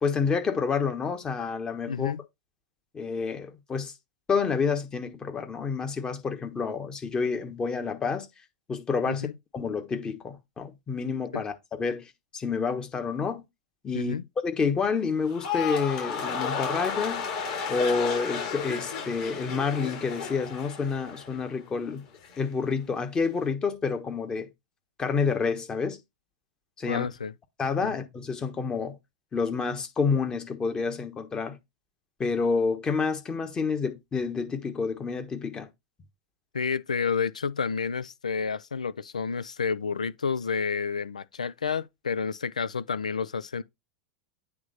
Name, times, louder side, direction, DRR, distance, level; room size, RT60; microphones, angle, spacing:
voice 1, 0.0-2.1 2.9-3.9 4.3-8.3 8.7-9.3 9.5-13.4 13.8-14.2 14.4-17.3 17.7-22.0 22.4-24.5 25.0-26.0 26.8-27.1 27.6-29.0 29.3-31.6 32.2-35.7, left 5 dB, 20° left, 1.2 m, -29 dB
voice 2, 1.9-2.2 9.1-9.3 11.3-11.4 13.9-14.2 26.8-27.3 36.5-43.6, left 5 dB, 80° left, 0.4 m, -30 dB
sound 1, 15.2-21.6 21.9-22.4, left 6 dB, 55° left, 3.5 m, -33 dB
8.5 x 3.3 x 4.0 m
figure-of-eight pair, 85°, 4 cm